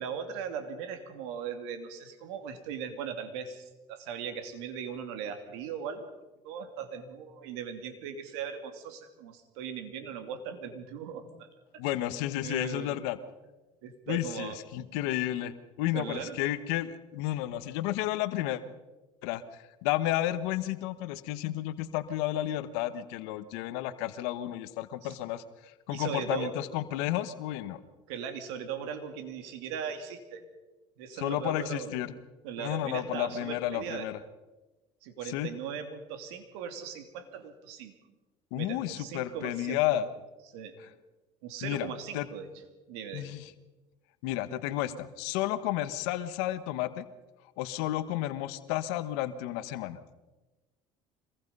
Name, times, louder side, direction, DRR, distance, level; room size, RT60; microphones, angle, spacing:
voice 1, 0.0-6.1 6.4-11.9 12.4-13.0 13.8-14.6 15.9-16.4 25.0-25.2 25.9-26.5 28.1-30.5 31.0-31.9 32.4-34.1 35.0-38.0 38.5-40.0 40.5-40.8 41.4-42.5 42.9-43.3, right 7 dB, 90° right, 7 dB, 2.8 m, -39 dB
voice 2, 11.8-13.2 14.1-18.6 19.2-27.8 31.2-32.1 32.6-34.2 35.2-35.5 38.5-40.1 41.6-41.9 42.1-42.3 43.1-43.4 44.2-47.0 47.6-50.0, left 14 dB, 85° left, 12 dB, 1.2 m, -32 dB
25.0 x 20.5 x 5.5 m, 1.2 s
supercardioid pair, 100°, 14 cm